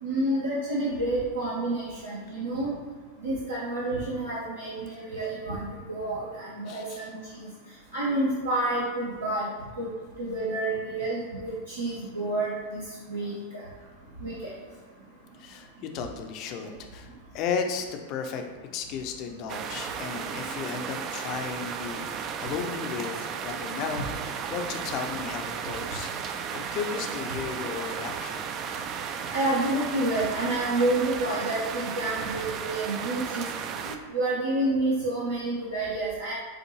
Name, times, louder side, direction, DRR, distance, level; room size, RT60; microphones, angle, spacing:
voice 1, 0.0-2.8 3.2-7.5 7.9-9.5 9.8-9.9 10.2-12.8 13.1-13.6 14.2-14.5 29.3-33.4 33.8-36.3, right 2 dB, 80° right, -8 dB, 0.9 m, -29 dB
voice 2, 6.7-7.1 15.4-18.4 18.7-28.5, left 6 dB, 40° left, 5 dB, 0.5 m, -35 dB
sound 1, 19.5-34.0, right 7 dB, 35° right, 0.3 m, -34 dB
7.1 x 2.6 x 3.0 m, 1.5 s
figure-of-eight pair, 90°, 0 cm